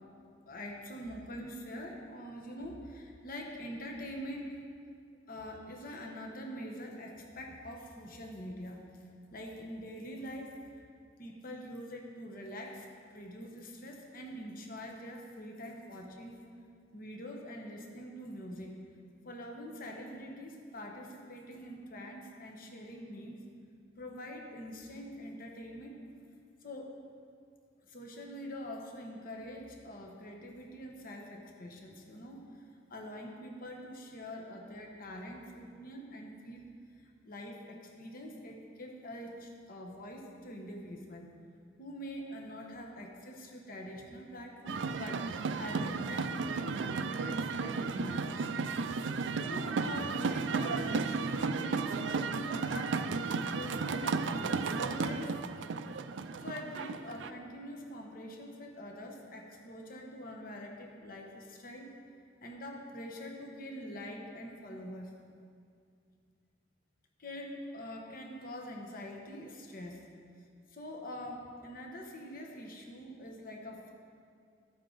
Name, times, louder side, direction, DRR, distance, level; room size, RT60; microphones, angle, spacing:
voice 1, 0.5-4.6 5.3-8.8 9.3-10.8 11.2-16.4 16.9-18.8 19.2-23.4 24.0-26.0 26.6-26.9 27.8-32.6 32.9-36.7 37.0-41.3 41.8-45.2 45.6-48.8 49.4-55.3 56.4-61.9 62.4-65.1 67.2-70.0 70.7-73.9, equal, 50° left, 1 dB, 1.1 m, -44 dB
sound 1, 44.7-57.3, right 4 dB, 70° right, 0.4 m, -34 dB
12.0 x 8.4 x 3.9 m, 2.3 s
head